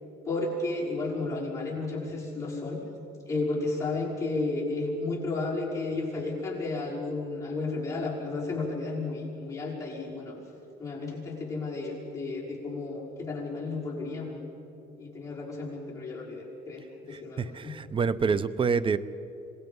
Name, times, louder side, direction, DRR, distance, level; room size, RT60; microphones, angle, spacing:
voice 1, 0.3-2.8 3.3-10.4 10.8-14.4 15.0-17.7, left 3 dB, 20° left, -5 dB, 5.4 m, -33 dB
voice 2, 17.1-19.0, right 5 dB, 30° right, 16 dB, 0.7 m, -27 dB
26.0 x 20.0 x 5.5 m, 2.9 s
cardioid pair, 110°, 17 cm